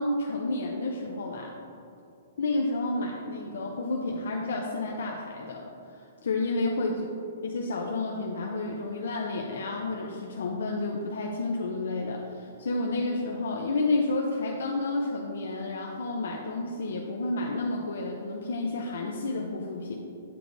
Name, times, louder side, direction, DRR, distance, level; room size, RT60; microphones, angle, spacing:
voice 1, 0.0-1.5 2.4-7.0 7.4-20.0, left 2 dB, 80° left, 0 dB, 0.5 m, -30 dB
8.4 x 4.5 x 2.6 m, 2.7 s
hypercardioid pair, 175°, 0 cm